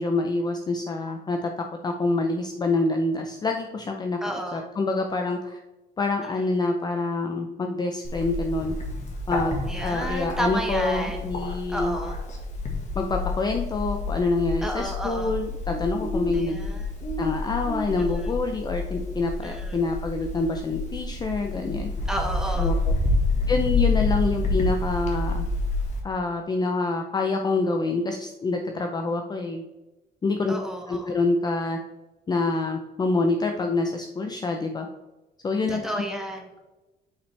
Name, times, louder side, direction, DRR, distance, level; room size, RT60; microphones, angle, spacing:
voice 1, 0.0-1.5 1.8-4.2 4.5-5.6 6.0-8.7 9.3-12.0 13.0-16.6 17.2-21.9 22.6-22.7 23.5-25.5 26.0-29.6 30.2-30.5 30.9-31.8 32.3-34.9 35.4-35.9, left 3 dB, 25° left, 4 dB, 0.5 m, -26 dB
voice 2, 4.2-4.6 6.2-6.4 9.7-11.2 11.7-12.2 14.6-15.3 16.3-16.9 18.0-18.3 19.4-19.8 22.1-22.8 30.5-31.1 35.7-36.5, equal, 5° right, 2 dB, 1.1 m, -32 dB
Bird, 8.0-26.0, left 3 dB, 45° left, 1.6 m, -28 dB
8.3 x 5.4 x 3.3 m, 1.1 s
cardioid pair, 160°, 17 cm